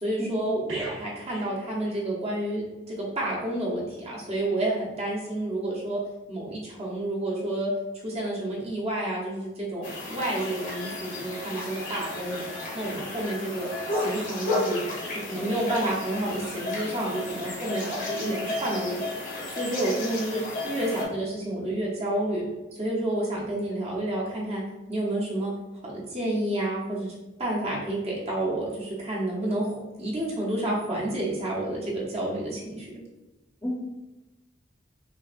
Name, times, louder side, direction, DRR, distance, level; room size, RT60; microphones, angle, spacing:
voice 1, 0.0-6.0 6.3-7.7 8.0-12.5 12.7-22.4 22.8-24.6 24.9-25.5 25.8-27.1 27.4-33.0, right 1 dB, 30° right, -5 dB, 1.0 m, -30 dB
sound 1, 0.7-2.6 2.9-3.1, right 1 dB, 70° right, 0.7 m, -42 dB
sound 2, 9.8-21.1, left 2 dB, 45° left, 1.0 m, -33 dB
voice 2, 18.2-18.5 33.6-33.8, equal, 15° left, -4 dB, 0.9 m, -32 dB
5.5 x 2.3 x 2.5 m, 1.0 s
head